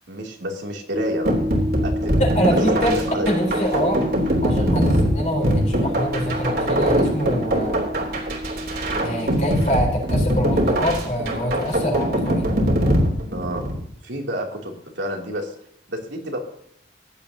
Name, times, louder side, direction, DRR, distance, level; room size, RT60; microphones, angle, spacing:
voice 1, 0.1-1.3 1.8-2.2 2.6-2.7 3.1-3.3 9.0-9.2 13.3-13.6 14.0-15.5 15.9-16.4, equal, 80° right, 0 dB, 3.0 m, -29 dB
sound 1, 0.9-10.1, equal, 25° right, 0.9 m, -31 dB
sound 2, 1.3-13.8, equal, 55° right, 3.2 m, -22 dB
voice 2, 2.2-3.0 3.3-4.0 4.4-7.9 9.0-12.5, equal, 40° left, 1 dB, 4.2 m, -25 dB
16.0 x 10.5 x 2.9 m, 0.69 s
head